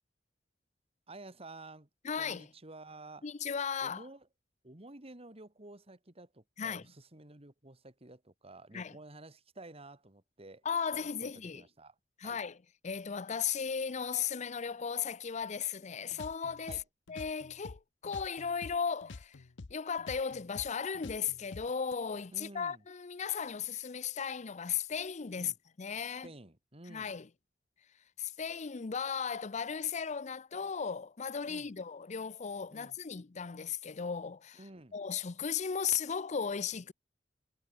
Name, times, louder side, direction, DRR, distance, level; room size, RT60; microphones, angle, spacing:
voice 1, 1.1-1.9 2.2-3.3 3.8-4.3 4.6-10.6 10.9-11.9 12.2-12.4 16.7-16.8 22.3-22.8 25.3-25.6 26.2-27.2 31.4-31.7 32.7-33.0 34.5-35.0, right 2 dB, 35° right, 2.5 m, -51 dB
voice 2, 2.0-2.5 3.2-4.0 6.6-6.8 8.7-9.0 10.6-11.6 12.2-12.6 12.8-16.8 17.1-19.4 19.7-26.3 26.9-27.3 28.2-34.6 34.9-36.9, left 6 dB, 40° left, 0.6 m, -36 dB
sound 1, 16.1-18.8 19.0-22.0, left 3 dB, 85° left, 0.7 m, -48 dB
head